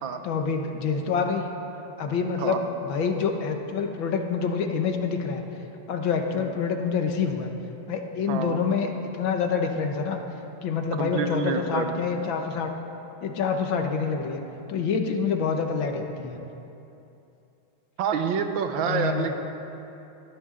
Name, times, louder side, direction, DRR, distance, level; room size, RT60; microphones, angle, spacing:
voice 1, 0.2-1.5 2.0-5.4 5.9-7.5 7.9-10.2 10.6-12.7 13.2-14.4 14.7-16.4 18.9-19.4, left 5 dB, 70° left, 4 dB, 1.8 m, -27 dB
voice 2, 8.3-8.6 11.0-11.9 18.0-19.4, right 6 dB, 70° right, 6 dB, 1.6 m, -27 dB
20.0 x 14.5 x 3.8 m, 2.9 s
omnidirectional pair, 2.3 m